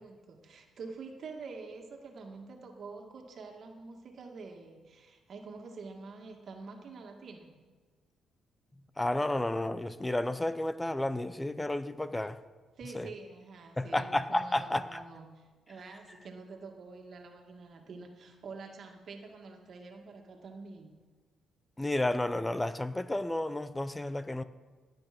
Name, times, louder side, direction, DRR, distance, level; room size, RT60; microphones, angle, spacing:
voice 1, 0.0-7.5 12.8-20.9, right 4 dB, 55° right, 2.0 m, -47 dB
voice 2, 9.0-12.4 12.9-13.1 13.8-15.0 21.8-24.4, left 1 dB, 10° left, 0.6 m, -31 dB
17.0 x 9.2 x 6.0 m
cardioid pair, 90°, 0 cm